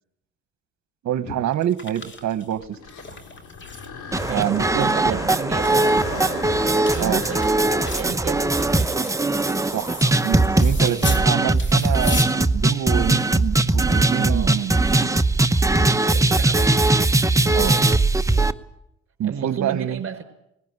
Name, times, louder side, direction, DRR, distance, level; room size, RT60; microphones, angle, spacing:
voice 1, 1.0-2.8 4.3-5.2 7.0-7.2 9.7-14.7 17.5-17.7 19.2-20.0, right 10 dB, 65° right, 14 dB, 1.2 m, -26 dB
sound 1, 1.2-3.9 4.1-4.9 5.4-11.3 11.5-12.3, left 3 dB, 40° left, 3.0 m, -36 dB
sound 2, 2.6-10.6 11.2-11.3 12.0-12.2 15.7-16.1, left 5 dB, 80° left, 2.9 m, -39 dB
sound 3, 4.1-18.5, right 2 dB, 10° right, 0.8 m, -20 dB
voice 2, 4.2-8.8 10.8-11.1 14.3-14.6 16.0-16.8 17.7-18.0 19.2-20.2, right 7 dB, 45° right, 7 dB, 4.9 m, -34 dB
19.5 x 16.5 x 9.6 m, 0.79 s
cardioid pair, 90°, 30 cm